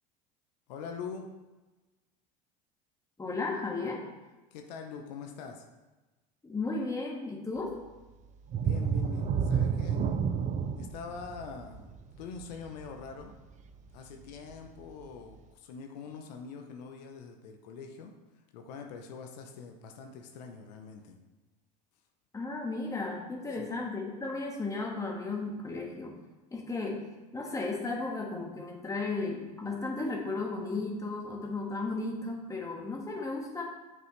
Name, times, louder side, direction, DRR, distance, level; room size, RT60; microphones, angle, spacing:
voice 1, 0.7-1.3 4.5-5.7 8.6-10.0 10.8-11.9 12.2-13.3 13.9-18.1 18.5-21.2 23.5-23.7, left 5 dB, 80° left, 3 dB, 0.9 m, -44 dB
voice 2, 3.2-4.0 6.4-7.8 22.3-26.1 26.5-27.0 27.3-33.6, left 3 dB, 15° left, -1 dB, 1.6 m, -34 dB
sound 1, 8.5-13.9 14.4-14.5 15.0-15.1, right 6 dB, 35° right, 0.5 m, -31 dB
7.6 x 5.5 x 3.2 m, 1.1 s
supercardioid pair, 95°, 21 cm